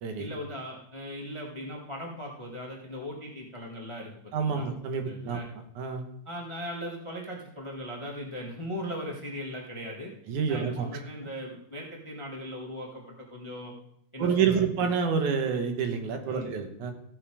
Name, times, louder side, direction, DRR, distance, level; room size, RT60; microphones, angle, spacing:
voice 1, 0.2-4.7 4.9-5.5 6.2-10.1 10.5-13.7 14.1-14.6 16.2-16.5, equal, 20° left, 0 dB, 0.8 m, -39 dB
voice 2, 4.3-5.4 5.8-6.0 10.3-10.9 14.2-16.9, right 6 dB, 70° right, 5 dB, 2.6 m, -28 dB
15.0 x 7.8 x 4.8 m, 0.74 s
omnidirectional pair, 3.7 m